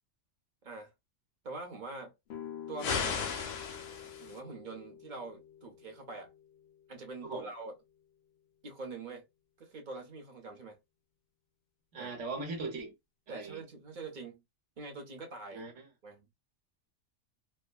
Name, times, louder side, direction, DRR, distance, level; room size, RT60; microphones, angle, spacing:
voice 1, 1.4-2.1 2.7-3.1 4.2-6.3 6.9-7.7 8.6-9.3 9.6-10.8 11.9-12.1 13.3-14.4 14.8-15.6 16.0-16.3, right 3 dB, 45° right, 1.0 m, -44 dB
sound 1, 2.3-8.0, left 9 dB, 65° left, 0.8 m, -49 dB
sound 2, 2.8-4.4, left 6 dB, 90° left, 1.1 m, -35 dB
voice 2, 11.9-12.9 13.3-13.6 15.5-15.9, right 3 dB, 70° right, 1.3 m, -39 dB
4.4 x 2.1 x 2.3 m
omnidirectional pair, 1.3 m